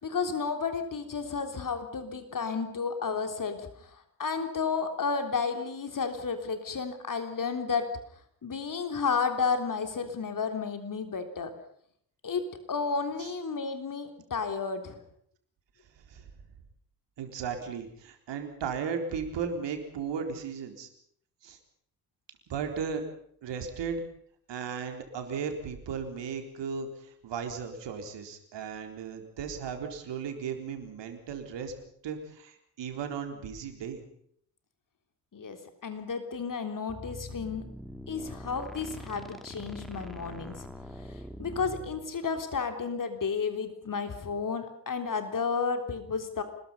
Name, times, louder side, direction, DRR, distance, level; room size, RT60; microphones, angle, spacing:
voice 1, 0.0-3.9 4.2-7.9 8.4-11.5 12.2-12.4 12.7-15.0 35.3-37.6 38.1-40.7 41.1-46.4, left 5 dB, 40° left, 7 dB, 3.7 m, -32 dB
voice 2, 15.9-16.3 17.2-20.9 21.4-21.6 22.5-23.0 23.4-24.0 24.5-31.7 32.0-34.1, right 6 dB, 60° right, 5 dB, 4.2 m, -36 dB
sound 1, 36.9-42.0, left 1 dB, ahead, 3.0 m, -43 dB
26.0 x 21.0 x 5.6 m, 0.65 s
hypercardioid pair, 50°, 49 cm